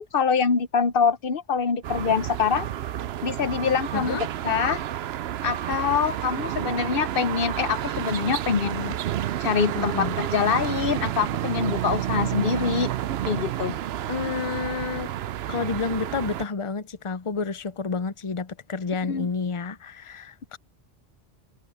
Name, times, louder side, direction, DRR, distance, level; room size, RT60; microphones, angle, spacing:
voice 1, 0.0-2.7 3.2-4.2 4.4-4.8 5.4-9.0 9.4-12.9 13.3-13.8 19.1-19.3, left 6 dB, 60° left, 0.9 m, -25 dB
sound 1, 1.8-16.5, right 12 dB, 75° right, 0.8 m, -30 dB
voice 2, 3.9-4.3 9.7-10.2 14.1-15.1 15.5-20.6, left 5 dB, 35° left, 0.7 m, -30 dB
omnidirectional pair, 1.1 m